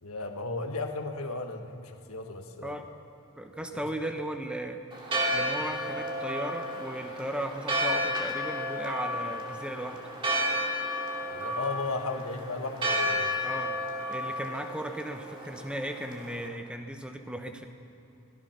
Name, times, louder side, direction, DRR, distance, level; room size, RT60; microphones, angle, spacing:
voice 1, 0.0-2.8 3.6-3.8 5.6-5.7 11.3-13.4, left 3 dB, 80° left, 4 dB, 1.5 m, -35 dB
voice 2, 3.4-4.8 5.3-10.0 13.4-13.7 14.1-17.7, right 1 dB, 5° right, 5 dB, 1.1 m, -36 dB
Church bell, 4.9-16.5, equal, 25° right, 2.5 m, -32 dB
24.5 x 18.5 x 5.9 m, 2.7 s
head